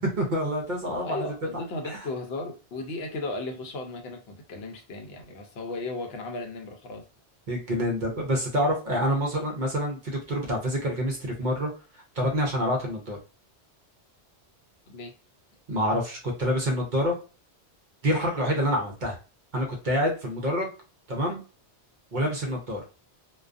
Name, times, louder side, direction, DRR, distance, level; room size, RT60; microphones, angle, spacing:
voice 1, 0.2-1.2 1.5-2.0 7.5-11.7 12.1-13.2 15.7-17.1 18.0-19.2 19.5-20.7 21.1-21.4 22.1-22.8, equal, 50° right, 0 dB, 0.7 m, -27 dB
voice 2, 1.0-7.1 14.9-15.1, left 2 dB, 70° left, 4 dB, 0.8 m, -35 dB
2.4 x 2.2 x 2.4 m, 0.33 s
omnidirectional pair, 1.2 m